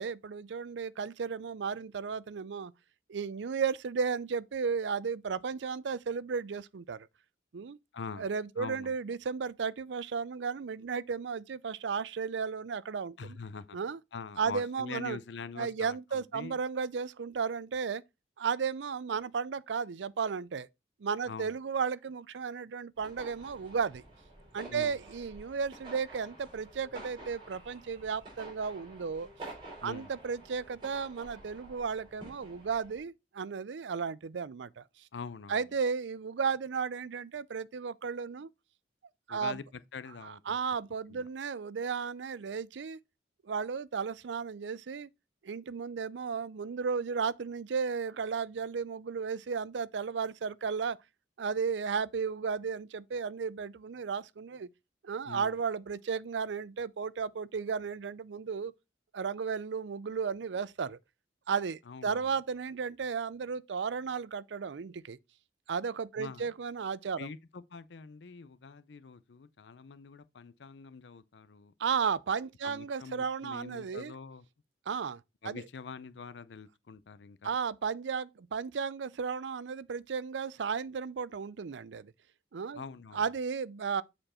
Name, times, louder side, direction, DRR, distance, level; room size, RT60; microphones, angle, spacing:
voice 1, 0.0-2.7 3.1-7.1 7.5-7.8 8.2-13.3 13.7-14.0 14.4-15.2 15.6-18.0 18.4-20.7 21.0-24.0 24.5-29.3 29.8-34.8 35.5-38.5 39.3-39.6 40.2-43.0 43.4-45.1 45.4-51.0 51.4-54.7 55.0-58.7 59.1-61.0 61.5-65.2 65.7-67.3 71.8-74.1 74.9-75.6 77.4-82.1 82.5-82.8 83.1-84.0, right 6 dB, 85° right, 0.5 m, -34 dB
voice 2, 7.9-8.3 8.6-8.9 13.2-13.8 14.1-16.6 21.2-21.6 24.7-25.0 29.8-30.1 35.1-35.6 39.3-40.6 41.1-41.3 55.3-55.6 61.9-62.3 66.2-66.5 67.2-71.7 72.6-74.4 75.4-77.6 82.7-83.3, left 5 dB, 80° left, 0.5 m, -44 dB
sound 1, 23.0-33.0, right 2 dB, 25° right, 4.5 m, -50 dB
7.7 x 4.4 x 4.2 m
head